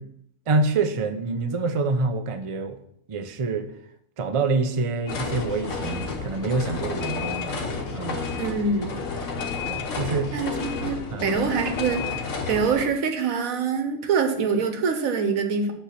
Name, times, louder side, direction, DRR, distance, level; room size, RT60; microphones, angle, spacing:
voice 1, 0.5-2.8 3.1-3.7 4.2-7.7 7.9-8.3 9.7-10.3 11.1-11.4, right 3 dB, 40° right, 7 dB, 0.4 m, -26 dB
sound 1, 5.1-12.9, left 4 dB, 65° left, 1.3 m, -31 dB
voice 2, 8.4-8.9 10.3-15.7, right 5 dB, 85° right, 6 dB, 1.3 m, -25 dB
8.2 x 3.4 x 5.8 m, 0.72 s
omnidirectional pair, 1.4 m